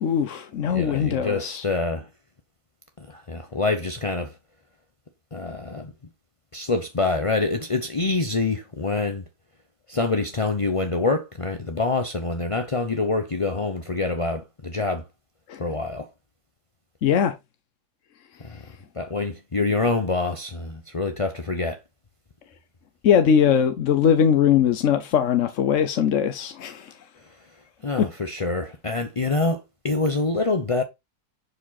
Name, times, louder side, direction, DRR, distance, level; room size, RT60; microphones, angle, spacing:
voice 1, 0.0-1.6 15.5-15.6 17.0-17.3 23.0-26.9 28.0-28.1, left 8 dB, 55° left, 0.9 m, -21 dB
voice 2, 0.7-2.1 3.0-4.4 5.3-5.9 6.5-9.2 9.9-15.1 15.6-16.1 18.4-21.8 27.2-27.3 27.8-30.8, left 3 dB, 40° left, 0.4 m, -26 dB
11.0 x 5.0 x 4.1 m
omnidirectional pair, 2.1 m